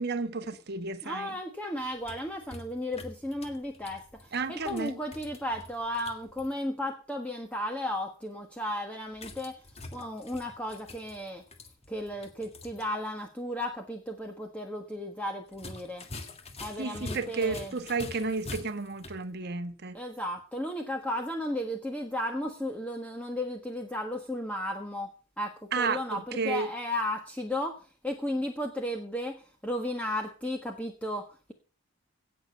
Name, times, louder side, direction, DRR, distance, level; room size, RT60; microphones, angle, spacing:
voice 1, 0.0-1.3 4.3-5.0 16.8-20.0 25.7-26.7, right 4 dB, 50° right, 1.2 m, -32 dB
voice 2, 1.0-9.6 9.9-11.4 11.9-16.1 16.6-17.7 19.9-25.1 25.4-31.5, left 1 dB, 5° left, 1.4 m, -34 dB
sound 1, 1.8-6.5 9.1-12.9 13.2-13.3 15.5-19.2, left 2 dB, 30° left, 1.8 m, -45 dB
17.5 x 6.9 x 6.6 m
head